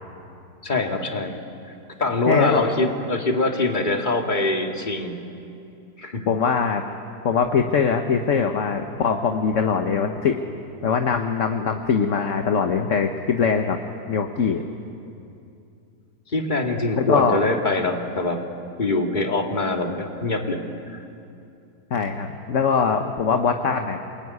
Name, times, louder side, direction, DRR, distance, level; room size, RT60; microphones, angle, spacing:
voice 1, 0.6-1.4 2.0-5.2 6.0-6.3 16.3-18.4 18.8-20.6 20.9-21.0, left 2 dB, 30° left, 3 dB, 2.2 m, -23 dB
voice 2, 2.3-2.6 6.3-6.8 7.2-10.4 10.8-13.8 14.1-14.6 17.0-17.4 21.9-24.0, left 6 dB, 50° left, 5 dB, 1.4 m, -22 dB
28.5 x 20.5 x 9.7 m, 2.6 s
omnidirectional pair, 1.7 m